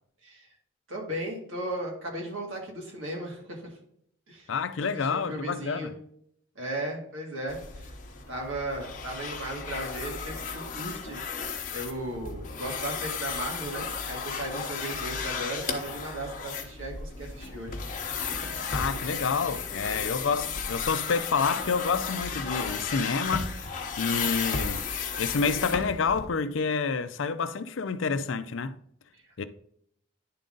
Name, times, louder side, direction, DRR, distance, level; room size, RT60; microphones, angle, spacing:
voice 1, 0.9-3.7 4.3-4.5 4.8-5.9 6.6-7.9 8.3-11.2 11.7-17.8, right 1 dB, 85° right, 2.3 m, -36 dB
voice 2, 4.5-5.9 18.7-24.9 25.2-28.8 29.4-29.5, left 5 dB, 80° left, 0.5 m, -28 dB
sound 1, 7.5-26.2, left 5 dB, 40° left, 0.9 m, -34 dB
10.0 x 3.9 x 3.8 m
head